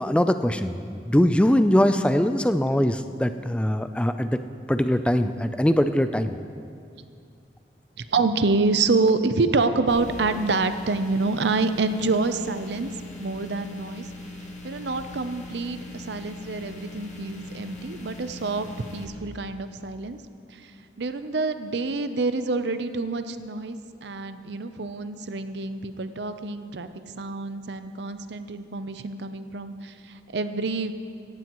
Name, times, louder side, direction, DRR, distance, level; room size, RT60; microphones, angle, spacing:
voice 1, 0.0-4.4 4.7-6.3, equal, 5° left, 10 dB, 0.4 m, -22 dB
voice 2, 8.0-12.9 13.2-14.1 14.6-20.2 20.5-20.7 21.0-26.9 27.2-30.9, right 3 dB, 70° right, 10 dB, 0.6 m, -27 dB
sound 1, 9.9-19.0, left 2 dB, 40° left, 1.6 m, -40 dB
17.5 x 15.0 x 3.1 m, 2.3 s
head